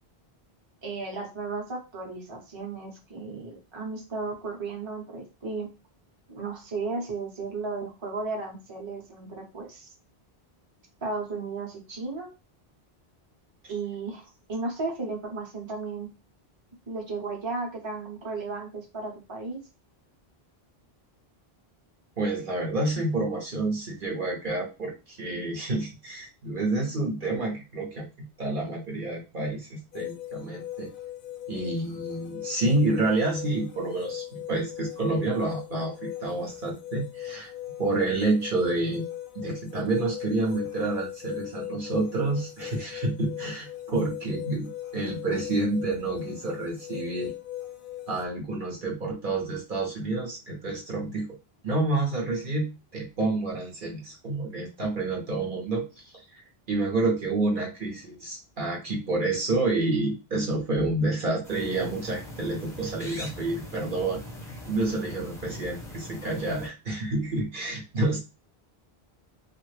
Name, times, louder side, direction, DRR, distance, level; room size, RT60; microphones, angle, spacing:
voice 1, 0.8-5.7 6.3-9.9 11.0-12.3 13.7-16.1 16.9-19.6, right 3 dB, 30° right, 0 dB, 0.8 m, -34 dB
voice 2, 22.2-30.9 31.5-37.5 37.8-39.0 39.3-47.3 48.1-51.3 51.6-64.2 64.7-68.2, right 2 dB, 55° right, -2 dB, 0.9 m, -29 dB
sound 1, 29.9-48.3, left 13 dB, 65° left, 0.7 m, -39 dB
sound 2, 61.4-66.7, equal, 5° left, 0.6 m, -41 dB
2.7 x 2.4 x 3.2 m, 0.28 s
omnidirectional pair, 1.1 m